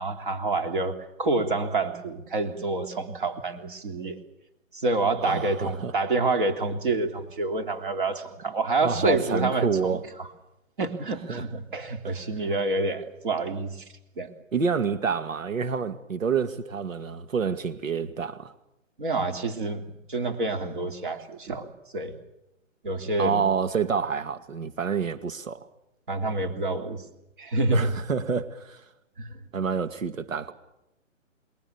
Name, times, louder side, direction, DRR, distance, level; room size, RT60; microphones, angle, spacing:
voice 1, 0.0-4.2 4.7-10.3 10.8-13.9 14.2-14.3 19.0-21.7 21.9-22.2 22.8-23.4 26.1-27.0 27.4-28.0 29.2-29.4, right 3 dB, 40° right, 3.4 m, -28 dB
voice 2, 5.2-5.9 8.8-10.0 11.3-11.4 12.0-12.1 14.5-18.5 23.2-25.7 27.7-28.8 29.5-30.5, right 6 dB, 75° right, 2.3 m, -28 dB
27.5 x 22.5 x 7.2 m
hypercardioid pair, 175°, 39 cm